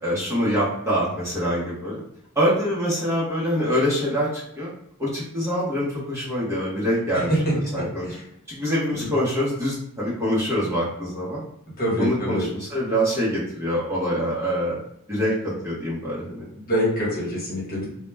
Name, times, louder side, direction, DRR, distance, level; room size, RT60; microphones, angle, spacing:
voice 1, 0.0-2.0 2.4-4.7 5.0-8.1 8.5-11.4 12.0-14.8 15.1-16.5, equal, 10° right, -8 dB, 0.7 m, -25 dB
voice 2, 7.3-8.2 8.9-9.1 11.8-12.5 16.5-17.9, equal, 40° left, -5 dB, 1.0 m, -25 dB
2.1 x 2.1 x 3.2 m, 0.77 s
head